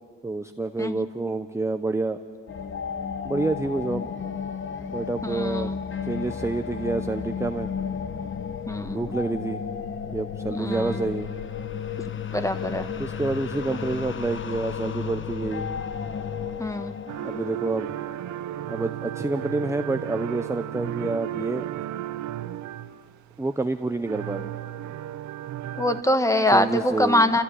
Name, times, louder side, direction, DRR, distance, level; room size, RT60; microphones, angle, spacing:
voice 1, 0.2-2.2 3.2-4.1 4.9-5.7 6.0-7.7 8.9-9.6 10.1-11.3 13.0-15.7 17.2-17.9 18.7-21.6 23.4-24.5 26.5-27.3, right 2 dB, 10° right, 8 dB, 0.7 m, -28 dB
sound 1, 2.5-18.7, left 7 dB, 40° left, 1.0 m, -33 dB
voice 2, 5.2-5.8 8.7-9.2 10.5-11.1 12.3-12.9 16.6-17.0 25.8-27.4, left 1 dB, 10° left, 9 dB, 1.4 m, -24 dB
sound 2, 17.1-23.2 24.1-26.0, right 12 dB, 70° right, 0.6 m, -34 dB
28.5 x 14.5 x 9.8 m, 2.4 s
cardioid pair, 90°, 30 cm